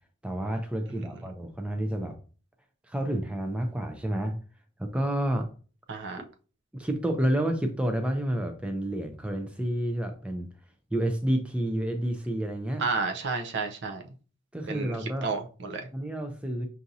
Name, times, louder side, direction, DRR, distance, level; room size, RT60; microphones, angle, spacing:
voice 1, 0.2-2.2 2.9-4.4 4.8-5.5 6.7-10.5 10.9-12.8 14.5-15.3 15.9-16.7, right 1 dB, 5° right, 0.4 m, -29 dB
voice 2, 5.9-6.2 12.8-14.0 14.7-15.0 15.2-15.9, right 4 dB, 60° right, 0.5 m, -31 dB
5.7 x 2.6 x 2.6 m
head